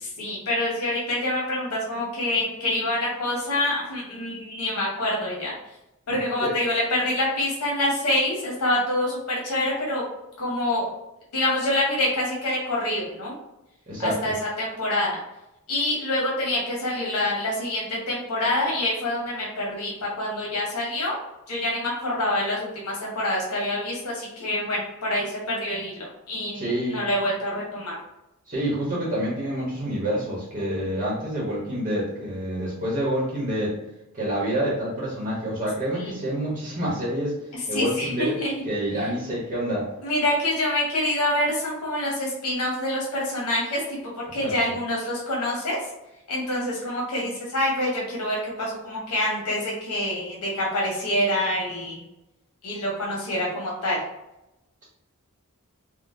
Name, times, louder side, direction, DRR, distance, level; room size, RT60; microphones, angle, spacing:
voice 1, 0.0-5.5 6.1-10.0 10.4-10.9 11.3-13.3 14.0-15.2 15.7-21.2 21.5-28.0 36.0-36.2 37.7-38.5 39.0-39.1 40.0-44.0 44.3-45.8 46.3-52.0 52.6-54.0, left 1 dB, 90° left, -3 dB, 0.9 m, -26 dB
voice 2, 6.1-6.5 13.9-14.3 26.5-27.0 28.5-33.7 34.1-37.4 37.7-38.4 38.6-39.9 44.4-44.6, equal, 35° right, -5 dB, 0.9 m, -27 dB
3.7 x 2.1 x 2.6 m, 0.92 s
head